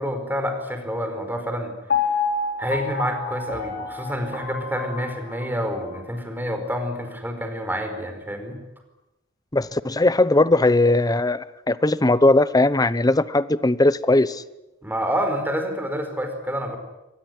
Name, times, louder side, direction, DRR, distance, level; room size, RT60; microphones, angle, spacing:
voice 1, 0.0-1.7 2.6-8.6 14.8-16.8, equal, 10° right, 6 dB, 4.8 m, -28 dB
Piano, 1.9-6.0 6.5-6.6, left 5 dB, 55° left, 3.9 m, -28 dB
voice 2, 9.5-14.4, left 2 dB, 20° left, 16 dB, 0.9 m, -19 dB
23.5 x 20.0 x 9.6 m, 0.97 s
head